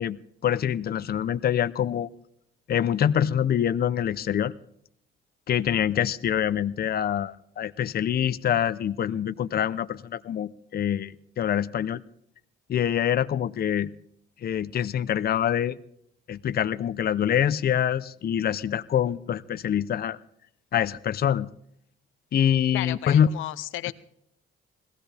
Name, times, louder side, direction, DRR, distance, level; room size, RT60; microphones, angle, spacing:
voice 1, 0.0-2.1 2.7-4.5 5.5-12.0 12.7-13.9 14.4-15.8 16.3-20.2 20.7-21.5 22.3-23.3, left 9 dB, 50° left, 14 dB, 0.7 m, -25 dB
voice 2, 22.7-23.9, left 15 dB, 85° left, 14 dB, 0.7 m, -33 dB
21.5 x 16.5 x 3.4 m, 0.70 s
cardioid pair, 90°, 20 cm